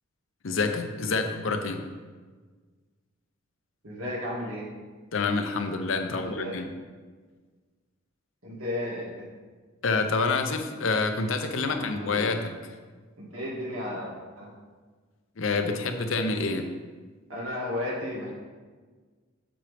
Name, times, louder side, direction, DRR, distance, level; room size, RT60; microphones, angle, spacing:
voice 1, 0.4-1.8 5.1-6.7 9.8-12.6 15.4-16.7, left 3 dB, 75° left, 6 dB, 0.7 m, -27 dB
voice 2, 3.8-4.6 6.2-6.6 8.4-9.3 11.5-12.4 13.2-14.5 17.3-18.3, left 1 dB, 80° right, -4 dB, 2.3 m, -34 dB
7.6 x 7.2 x 3.5 m, 1.4 s
head